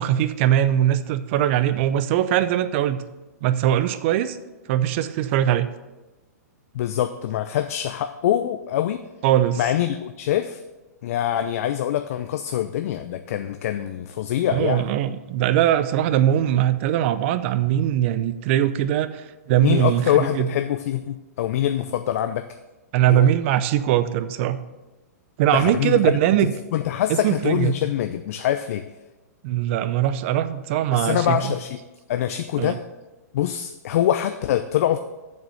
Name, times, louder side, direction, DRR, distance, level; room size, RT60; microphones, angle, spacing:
voice 1, 0.0-3.0 3.4-4.4 4.7-5.7 9.2-9.6 14.5-20.5 22.9-24.6 25.4-26.5 27.1-27.7 29.4-31.5 32.6-32.8, right 11 dB, 45° right, 13 dB, 0.7 m, -21 dB
voice 2, 6.7-9.0 9.6-10.6 11.0-14.9 19.6-22.5 23.1-23.3 25.5-26.1 26.7-28.8 30.9-31.8 32.1-32.8 33.3-35.0, left 11 dB, 60° left, 9 dB, 0.5 m, -24 dB
7.3 x 6.4 x 7.0 m, 1.1 s
hypercardioid pair, 135°, 9 cm